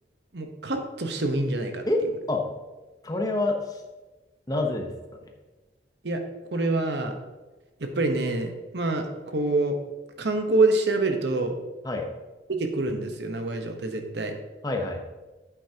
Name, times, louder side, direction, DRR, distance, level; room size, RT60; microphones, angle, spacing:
voice 1, 0.3-1.9 6.0-6.2 6.5-7.2 7.8-9.1 9.3-9.7 10.2-11.5 12.5-14.3, right 2 dB, 75° right, 5 dB, 1.0 m, -26 dB
voice 2, 1.9-2.4 3.0-3.8 4.5-4.9 11.8-12.1 14.6-15.0, left 2 dB, 20° left, 2 dB, 0.9 m, -26 dB
9.2 x 8.3 x 2.9 m, 1.2 s
head